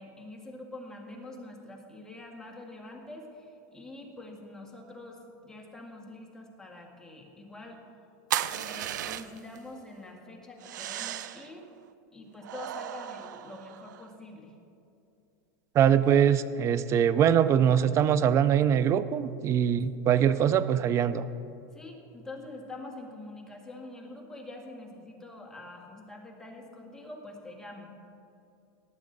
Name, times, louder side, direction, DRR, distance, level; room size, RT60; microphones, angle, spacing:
voice 1, 0.0-7.8 8.5-11.7 12.1-14.5 21.7-27.9, left 2 dB, 5° left, -1 dB, 1.8 m, -45 dB
sound 1, 8.3-9.6 10.6-11.5 12.4-14.1, right 11 dB, 90° right, 0.5 m, -35 dB
voice 2, 15.7-21.3, right 9 dB, 30° right, 14 dB, 0.5 m, -23 dB
19.0 x 8.4 x 4.0 m, 2.6 s
supercardioid pair, 135°, 10 cm